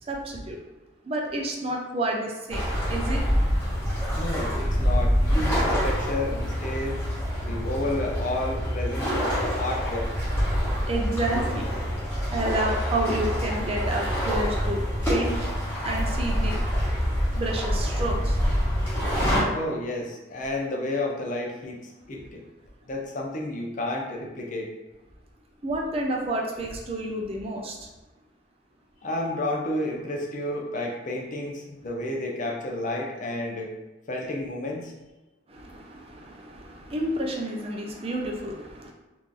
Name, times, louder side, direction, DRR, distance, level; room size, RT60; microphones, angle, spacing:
voice 1, 0.0-0.6 1.0-3.2 10.9-11.7 12.3-14.8 15.1-15.5 15.8-16.6 17.4-18.4 25.6-27.8 35.5-38.9, right 1 dB, 30° right, 0 dB, 0.4 m, -30 dB
sound 1, 2.5-19.4, equal, 10° left, 1.2 m, -26 dB
voice 2, 4.1-7.0 7.4-10.1 19.5-22.4 22.8-24.7 29.0-33.7 34.1-34.9, left 1 dB, 40° left, 0 dB, 0.5 m, -31 dB
3.0 x 2.5 x 3.7 m, 1.1 s
head